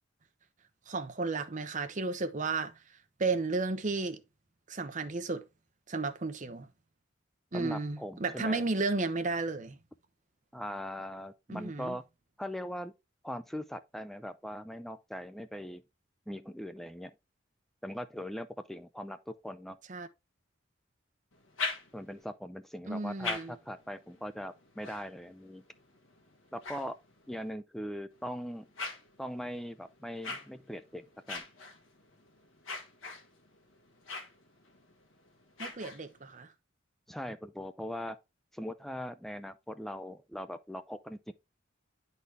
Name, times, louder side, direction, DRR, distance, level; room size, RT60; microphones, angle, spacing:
voice 1, 0.9-2.7 3.2-4.2 4.7-5.4 5.9-6.7 7.5-9.8 11.5-12.0 19.9-20.1 22.9-23.5 35.6-36.5, right 3 dB, 40° right, 0.8 m, -33 dB
voice 2, 7.5-8.7 10.5-12.0 12.4-12.9 13.2-15.8 16.3-17.1 17.8-19.8 21.9-25.6 26.5-27.0 27.3-28.7 29.2-31.4 37.1-38.2 38.5-41.3, equal, ahead, 0.3 m, -40 dB
sound 1, 21.3-22.3 22.9-27.5 28.1-36.4, left 3 dB, 80° left, 1.5 m, -44 dB
9.7 x 4.1 x 3.4 m
head